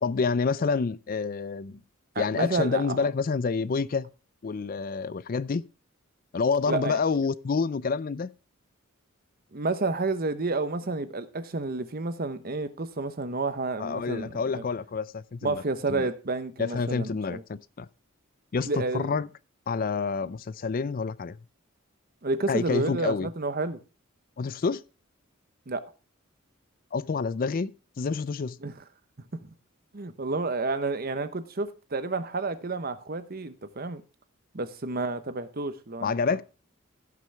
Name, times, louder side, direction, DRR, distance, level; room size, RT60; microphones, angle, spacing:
voice 1, 0.0-1.8 2.2-4.1 4.4-5.6 6.3-8.3 13.8-15.6 15.9-16.1 16.6-17.9 18.5-19.3 19.7-21.4 22.5-23.3 24.4-24.8 26.9-28.6 36.0-36.4, left 5 dB, 45° left, 0.4 m, -28 dB
voice 2, 2.1-3.1 6.7-7.0 9.5-14.6 15.4-17.4 18.6-19.1 22.2-23.8 25.7-25.8 28.6-28.7 29.4-29.5 29.9-34.0 34.5-36.1, right 3 dB, 45° right, 0.9 m, -30 dB
16.5 x 6.1 x 3.4 m
head